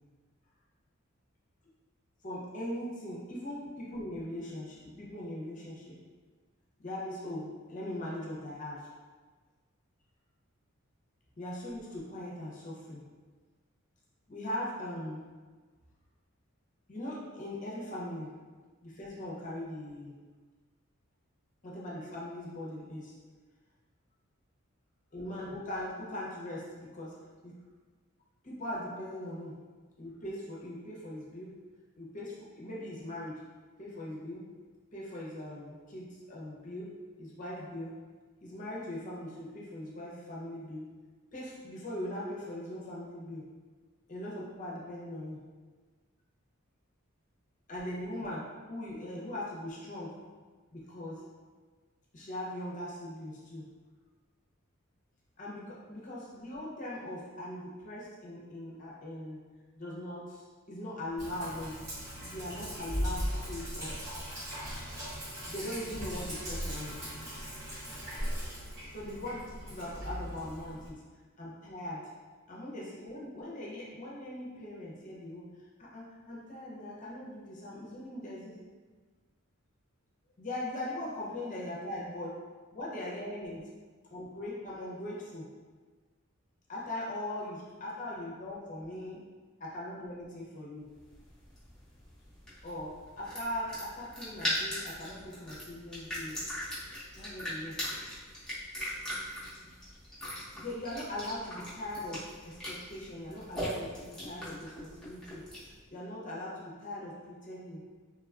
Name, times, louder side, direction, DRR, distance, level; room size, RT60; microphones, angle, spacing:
voice 1, 2.2-6.0 6.8-8.9 11.4-13.0 14.3-15.2 16.9-18.3 18.8-20.1 21.6-23.1 25.1-27.6 28.4-29.6 30.0-31.5 32.0-33.4 33.8-34.5 34.9-38.0 38.4-40.9 41.3-43.4 44.1-45.4 47.7-50.2 50.7-51.3 52.1-53.7 55.4-59.4 59.7-61.9 62.2-63.9 65.5-66.9 68.9-69.4 69.6-71.0 71.4-72.1 72.5-78.6 80.4-82.4 82.7-83.6 84.1-85.5 86.7-89.2 89.6-90.9 92.6-96.4 97.2-97.8 99.6-99.7 100.5-107.8, left 1 dB, 35° left, -5 dB, 0.6 m, -40 dB
Sink (filling or washing), 61.2-70.9, equal, 45° right, 1.4 m, -38 dB
sound 1, 91.0-105.8, equal, 5° left, 0.8 m, -40 dB
3.3 x 2.2 x 2.3 m, 1.4 s
head